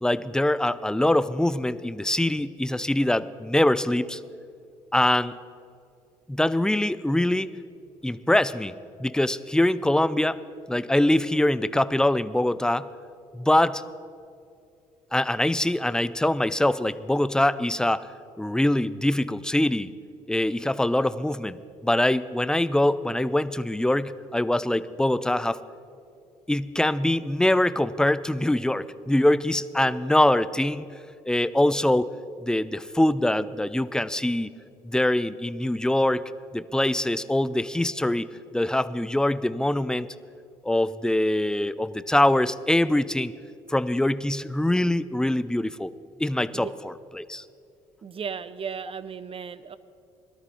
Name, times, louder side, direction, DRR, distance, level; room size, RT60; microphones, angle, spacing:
voice 1, 0.0-4.2 4.9-5.4 6.3-7.5 8.0-8.7 9.0-10.4 10.7-12.9 13.3-13.8 15.1-18.1 18.4-19.9 20.3-25.6 26.5-30.9 31.3-32.1 32.4-34.5 34.8-36.2 36.5-38.3 38.5-40.1 40.6-43.3 43.7-45.9 46.2-47.4, left 1 dB, 5° left, 15 dB, 0.5 m, -23 dB
voice 2, 48.0-49.8, right 6 dB, 40° right, 14 dB, 0.7 m, -35 dB
17.5 x 13.0 x 4.3 m, 2.5 s
hypercardioid pair, 55°, 15 cm